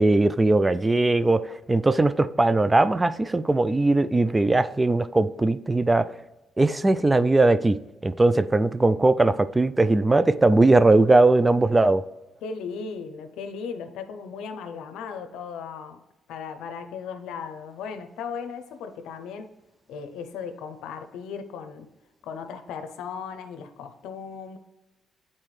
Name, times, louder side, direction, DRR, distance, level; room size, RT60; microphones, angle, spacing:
voice 1, 0.0-6.1 6.6-7.8 8.0-12.0, right 2 dB, 20° right, 14 dB, 0.3 m, -20 dB
voice 2, 12.4-16.0 16.3-19.5 19.9-21.9 22.2-24.6, left 6 dB, 90° left, 8 dB, 0.6 m, -36 dB
8.8 x 4.3 x 3.2 m, 1.0 s
cardioid pair, 90°, 0 cm